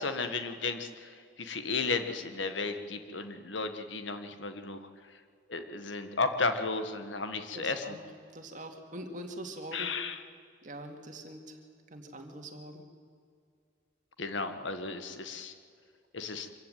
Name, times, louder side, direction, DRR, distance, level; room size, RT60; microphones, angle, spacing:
voice 1, 0.0-4.8 5.5-8.0 9.7-10.2 14.2-15.5 16.1-16.5, left 4 dB, 75° left, 8 dB, 1.6 m, -34 dB
voice 2, 7.5-8.0 8.3-9.9 10.6-11.6 11.9-12.8, right 1 dB, 40° right, 4 dB, 2.4 m, -43 dB
25.0 x 15.5 x 9.2 m, 2.2 s
head